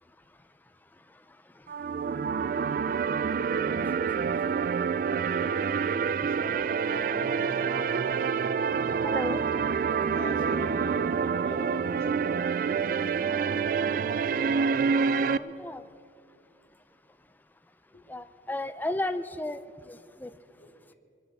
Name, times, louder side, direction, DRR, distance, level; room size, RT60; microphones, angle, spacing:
sound 1, 1.7-15.4, right 6 dB, 50° right, 0.3 m, -27 dB
voice 1, 6.2-8.7 10.1-12.6 17.9-18.0 20.5-20.9, left 1 dB, 50° left, -1 dB, 2.7 m, -44 dB
voice 2, 9.0-9.4 15.3-15.8 18.1-19.6 19.9-20.3, left 1 dB, 10° left, 12 dB, 0.4 m, -33 dB
23.0 x 8.4 x 6.7 m, 2.4 s
head